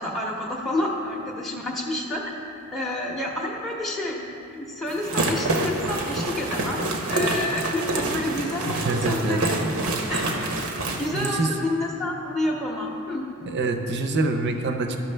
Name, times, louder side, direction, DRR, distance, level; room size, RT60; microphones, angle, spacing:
voice 1, 0.0-2.4 2.7-4.2 4.5-6.8 7.1-9.6 10.1-10.3 11.0-13.2, left 1 dB, ahead, -3 dB, 0.7 m, -29 dB
sound 1, 4.9-11.3, right 2 dB, 90° right, 0.8 m, -27 dB
voice 2, 8.7-9.7 11.1-11.5 13.5-15.0, right 3 dB, 50° right, 5 dB, 0.6 m, -26 dB
11.5 x 5.8 x 3.3 m, 2.7 s
head